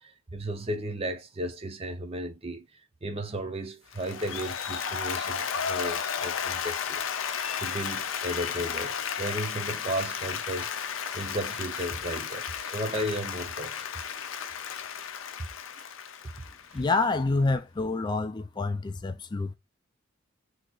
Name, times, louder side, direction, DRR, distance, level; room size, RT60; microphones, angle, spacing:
voice 1, 0.0-2.7 3.0-13.8 16.7-16.8, right 1 dB, 30° right, 0.6 m, -35 dB
Applause, 3.9-17.1, left 7 dB, 80° left, 0.5 m, -33 dB
voice 2, 16.7-19.6, left 3 dB, 20° left, 0.3 m, -27 dB
2.8 x 2.4 x 3.9 m
head